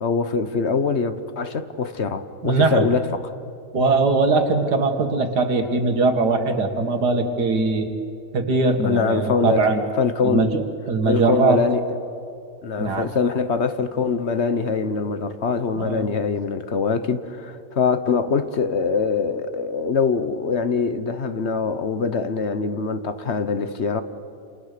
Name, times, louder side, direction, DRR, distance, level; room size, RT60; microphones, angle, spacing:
voice 1, 0.0-3.2 8.8-9.7 9.9-10.5 11.0-12.0 12.6-24.0, left 5 dB, 45° left, 1.2 m, -23 dB
voice 2, 2.4-2.9 3.7-7.9 8.3-9.8 10.2-10.6 10.9-11.6 12.8-13.1 15.8-16.1, right 3 dB, 75° right, 2.3 m, -21 dB
29.0 x 28.5 x 6.7 m
omnidirectional pair, 1.8 m